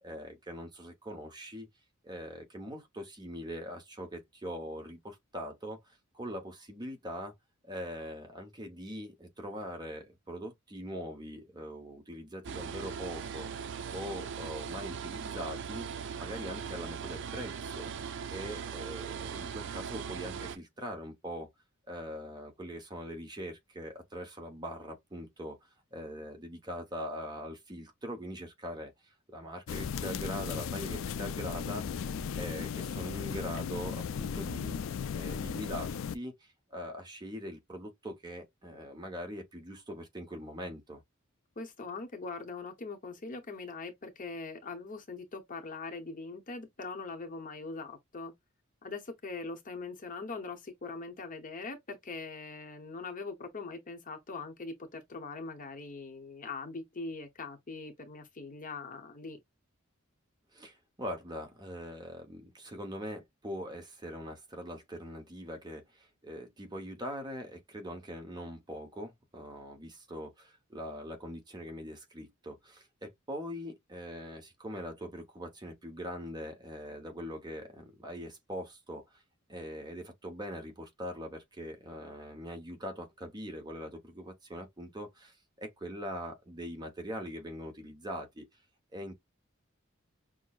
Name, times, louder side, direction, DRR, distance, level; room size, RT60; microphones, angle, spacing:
voice 1, 0.0-1.7 2.0-7.3 7.6-13.5 13.9-17.9 18.3-21.5 21.9-31.9 32.4-34.8 35.1-41.0 60.5-79.2 79.5-88.4 88.9-89.1, equal, 20° right, 0.9 m, -42 dB
sound 1, 12.4-20.6, right 7 dB, 60° right, 0.4 m, -39 dB
sound 2, 29.7-36.1, left 6 dB, 65° left, 0.3 m, -36 dB
voice 2, 41.6-48.3 48.8-59.4, left 3 dB, 40° left, 0.8 m, -42 dB
6.1 x 2.1 x 2.4 m
head